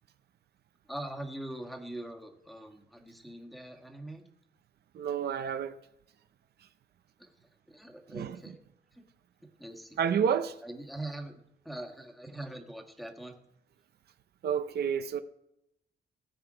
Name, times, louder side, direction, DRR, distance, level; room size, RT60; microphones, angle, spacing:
voice 1, 0.9-4.2 7.2-7.3 7.7-8.6 8.9-9.0 9.6-10.0 10.6-13.4, right 1 dB, ahead, 1.5 m, -42 dB
voice 2, 4.9-5.7 8.1-8.4 10.0-10.6 14.4-15.2, right 7 dB, 65° right, 0.7 m, -29 dB
17.5 x 8.0 x 4.9 m
cardioid pair, 125°, 18 cm